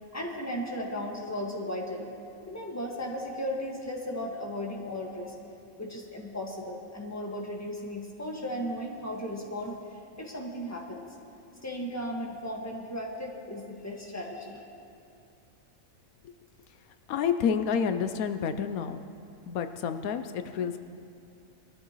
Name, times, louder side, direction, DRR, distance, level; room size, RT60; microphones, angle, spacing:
voice 1, 0.1-2.1 2.5-5.3 5.8-9.8 10.2-11.0 11.6-14.6, equal, 10° left, -1 dB, 1.6 m, -36 dB
voice 2, 17.1-19.0 19.5-20.8, left 7 dB, 85° left, 9 dB, 1.1 m, -29 dB
22.0 x 14.0 x 3.1 m, 2.6 s
omnidirectional pair, 1.5 m